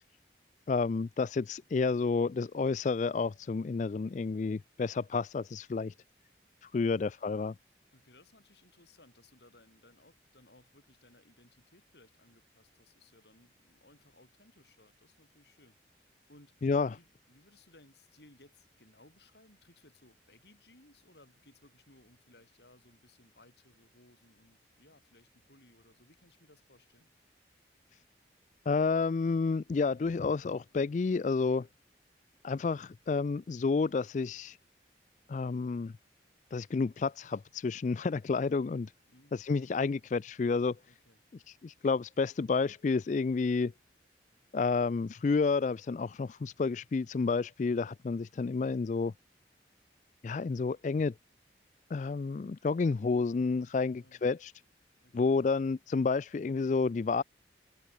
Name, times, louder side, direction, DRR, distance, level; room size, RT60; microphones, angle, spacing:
voice 1, 0.7-5.9 6.6-7.5 16.6-17.0 28.7-31.7 32.4-34.6 35.3-35.9 36.5-38.9 39.3-40.8 41.5-43.7 44.5-49.1 50.2-51.1 51.9-54.5 55.1-57.2, left 4 dB, 40° left, 0.3 m, -30 dB
voice 2, 7.9-27.1 39.1-39.4 40.9-41.2 53.8-54.2 55.0-55.4, left 2 dB, 70° left, 8.0 m, -62 dB
head